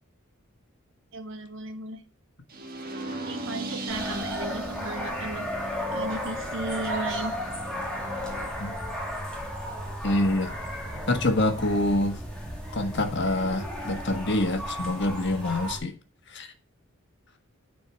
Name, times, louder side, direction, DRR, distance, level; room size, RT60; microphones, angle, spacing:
voice 1, 1.1-2.0 3.3-5.5 5.9-7.3, right 2 dB, 60° right, 1.5 m, -35 dB
sound 1, 2.5-8.5, right 1 dB, 45° right, 1.5 m, -38 dB
sound 2, 3.9-15.8, equal, 5° left, 2.3 m, -34 dB
voice 2, 10.0-10.6 11.1-12.2 12.7-15.9 16.3-16.5, left 1 dB, 55° left, 1.5 m, -26 dB
10.5 x 4.6 x 5.7 m
head